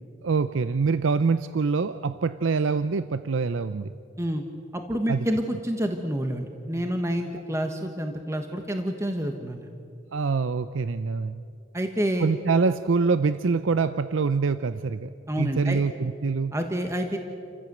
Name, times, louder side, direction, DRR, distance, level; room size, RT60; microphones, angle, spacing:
voice 1, 0.2-3.9 5.1-5.3 10.1-11.4 12.2-15.1 15.4-16.5, right 4 dB, 75° right, 12 dB, 0.5 m, -25 dB
voice 2, 4.7-9.7 11.7-12.3 15.3-15.8 16.5-17.2, equal, 15° right, 5 dB, 1.3 m, -28 dB
29.0 x 15.5 x 7.9 m, 2.5 s
head